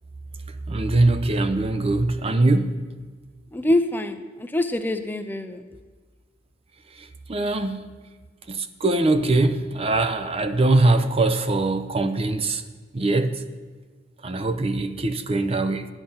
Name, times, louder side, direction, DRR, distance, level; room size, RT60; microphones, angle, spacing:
voice 1, 0.7-2.8 7.3-7.9 8.5-12.6 12.9-13.3 14.2-15.9, right 2 dB, 30° right, 9 dB, 0.6 m, -22 dB
voice 2, 3.5-5.7, left 1 dB, 10° left, 8 dB, 0.5 m, -25 dB
11.5 x 8.9 x 5.6 m, 1.4 s
head